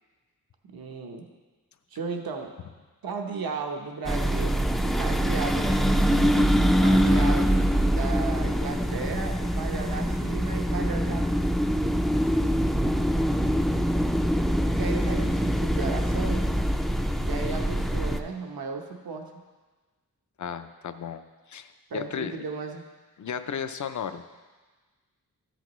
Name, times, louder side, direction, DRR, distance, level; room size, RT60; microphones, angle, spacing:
voice 1, 0.7-1.3 1.9-2.5 3.0-4.5 4.8-7.5 7.8-11.5 14.6-16.5 17.2-19.3 21.9-22.8, right 4 dB, 80° right, 3 dB, 1.0 m, -35 dB
sound 1, 4.1-18.2, equal, ahead, 0.4 m, -24 dB
voice 2, 20.4-22.4 23.2-24.2, left 7 dB, 55° left, 10 dB, 0.6 m, -34 dB
13.5 x 8.2 x 3.1 m, 1.3 s
wide cardioid pair, 120°, 36 cm